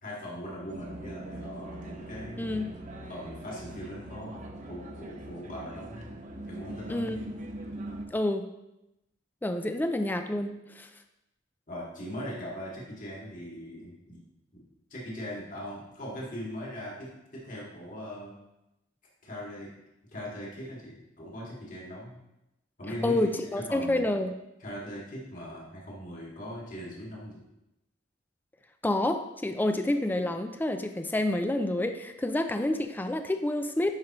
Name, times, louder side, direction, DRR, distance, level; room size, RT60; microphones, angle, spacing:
voice 1, 0.0-2.6 3.1-4.4 4.7-6.0 6.5-7.1 11.7-14.2 14.5-14.6 14.9-18.3 19.2-19.7 20.1-22.2 22.8-23.2 23.7-24.1 24.6-27.4, equal, 45° left, -5 dB, 2.2 m, -40 dB
sound 1, 0.7-8.0, right 1 dB, 40° right, 0.9 m, -42 dB
voice 2, 2.4-2.7 6.9-7.2 8.1-8.5 9.4-10.9 23.0-24.3 28.8-33.9, left 1 dB, 10° left, 7 dB, 0.4 m, -28 dB
11.0 x 5.0 x 3.0 m, 0.91 s
head